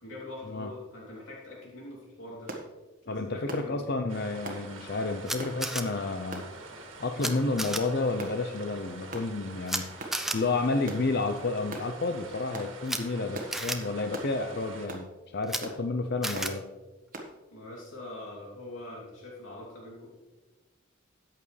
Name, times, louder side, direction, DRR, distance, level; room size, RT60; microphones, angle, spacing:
voice 1, 0.0-2.5 3.0-3.8 17.5-20.1, left 2 dB, 70° left, -4 dB, 3.0 m, -43 dB
sound 1, 2.5-2.7 3.5-3.7 4.4-4.6 5.4-5.6 6.3-6.5 7.2-7.5 8.2-8.4 9.1-9.3 10.0-10.2 10.9-11.1 11.7-11.9 12.5-12.7 13.3-13.5 14.1-14.3 14.9-15.1 15.6-15.8 16.3-16.5 17.1-17.3, right 2 dB, 40° right, 1.5 m, -39 dB
voice 2, 3.1-6.5 7.0-10.0 10.3-16.6, left 3 dB, 50° left, 6 dB, 0.6 m, -30 dB
sound 2, 4.1-14.9, right 3 dB, 70° right, 1.9 m, -46 dB
Camera, 5.3-5.8 7.2-7.3 7.6-7.8 9.7-9.8 10.1-10.4 12.8-13.0 13.5-13.8 15.4-15.6 16.2-16.5, right 1 dB, ahead, 0.6 m, -31 dB
13.5 x 9.1 x 3.3 m, 1.2 s
head